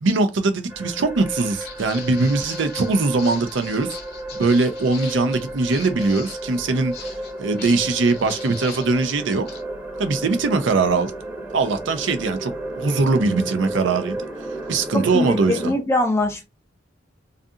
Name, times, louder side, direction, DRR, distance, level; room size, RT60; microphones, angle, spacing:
voice 1, 0.0-3.9 4.3-6.9 7.4-9.5 10.0-11.1 11.5-12.5 12.8-14.2 14.7-15.7, right 3 dB, 75° right, 0.5 m, -21 dB
sound 1, 0.7-15.7, right 1 dB, 10° right, 0.7 m, -33 dB
Walk footsteps, 1.3-9.6, left 6 dB, 55° left, 0.7 m, -41 dB
voice 2, 14.9-16.4, left 1 dB, 15° left, 0.4 m, -22 dB
2.6 x 2.5 x 2.4 m
head